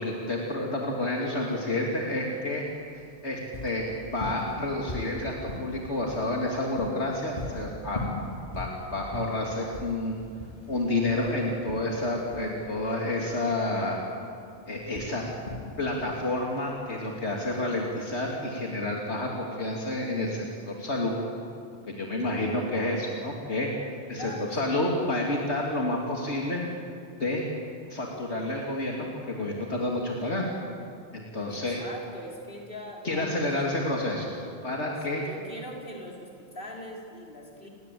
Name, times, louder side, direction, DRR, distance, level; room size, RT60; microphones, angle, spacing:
voice 1, 0.0-2.6 2.9-8.0 8.5-10.1 10.7-14.0 14.7-15.2 15.8-21.2 21.9-23.7 24.1-26.6 27.2-27.4 27.9-30.5 31.1-31.8 33.0-34.3 34.6-35.2, left 1 dB, 75° left, -2 dB, 3.2 m, -29 dB
sound 1, 2.7-18.3, left 2 dB, 40° left, 3.2 m, -40 dB
voice 2, 24.1-24.8 31.5-33.8 35.2-37.7, equal, 55° left, -1 dB, 4.8 m, -42 dB
29.5 x 22.5 x 8.6 m, 2.4 s
omnidirectional pair, 1.1 m